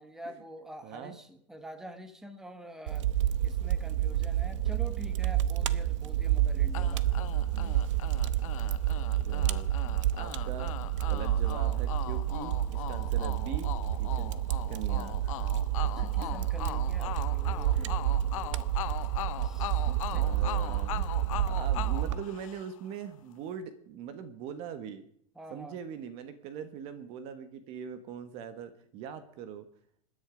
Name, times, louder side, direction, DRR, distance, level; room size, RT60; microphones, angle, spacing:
voice 1, 0.0-3.1 3.4-7.4 15.8-18.7 19.4-20.6 25.3-25.8, equal, 5° right, 9 dB, 1.3 m, -47 dB
voice 2, 0.8-1.2 7.5-7.8 9.2-9.7 10.1-10.7 11.1-13.7 14.0-14.3 14.7-15.5 16.0-16.3 17.7-17.9 19.9-25.0 25.5-29.7, right 8 dB, 35° right, 12 dB, 1.4 m, -42 dB
Fire, 2.9-22.2, right 12 dB, 65° right, 0.9 m, -29 dB
sound 1, 6.7-22.9, left 15 dB, 75° left, 0.6 m, -40 dB
26.5 x 10.5 x 5.1 m, 0.66 s
supercardioid pair, 165°, 17 cm